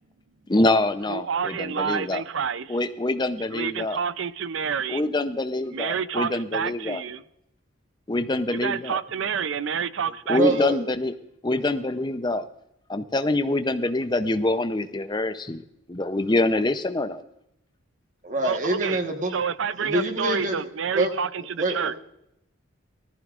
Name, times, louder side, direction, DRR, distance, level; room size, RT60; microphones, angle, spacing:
voice 1, 0.5-2.2 2.7-4.0 4.9-7.0 8.1-9.0 10.3-11.1 11.4-12.4 12.9-15.6 15.9-17.2, left 2 dB, 20° left, 10 dB, 0.6 m, -25 dB
voice 2, 1.1-2.8 3.5-5.0 5.7-7.2 8.5-10.4 18.4-19.0 19.3-22.0, right 7 dB, 65° right, 15 dB, 0.5 m, -28 dB
voice 3, 10.3-10.8 18.2-19.3 19.8-20.6 20.9-21.1 21.6-22.0, right 2 dB, 35° right, 4 dB, 1.3 m, -25 dB
18.5 x 14.0 x 2.5 m, 0.80 s
head